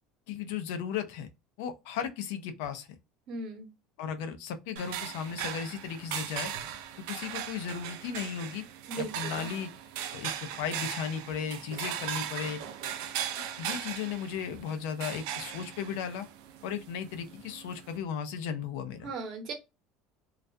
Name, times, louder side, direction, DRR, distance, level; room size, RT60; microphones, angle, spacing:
voice 1, 0.3-1.3 1.6-3.0 4.0-6.5 7.1-8.6 9.0-9.7 10.1-12.6 13.6-16.3 16.6-19.1, left 7 dB, 80° left, 0.4 m, -35 dB
voice 2, 3.3-3.7 8.9-9.5 19.0-19.5, right 3 dB, 50° right, 0.8 m, -37 dB
sound 1, 4.8-18.0, right 9 dB, 80° right, 0.4 m, -38 dB
2.3 x 2.2 x 2.5 m
cardioid pair, 145°, 0 cm